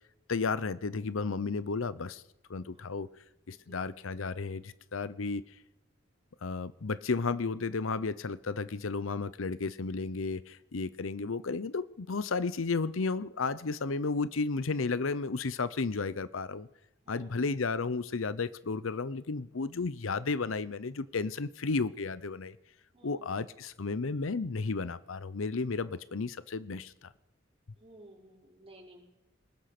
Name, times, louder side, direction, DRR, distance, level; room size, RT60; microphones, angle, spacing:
voice 1, 0.3-2.2 2.5-3.1 3.5-5.4 6.4-16.7 17.1-22.6 23.0-26.9, left 4 dB, 80° left, 16 dB, 0.7 m, -33 dB
voice 2, 3.5-3.9 17.0-17.6 22.9-23.4 27.8-29.0, right 1 dB, 30° right, -1 dB, 5.2 m, -55 dB
21.5 x 20.0 x 6.0 m, 0.90 s
head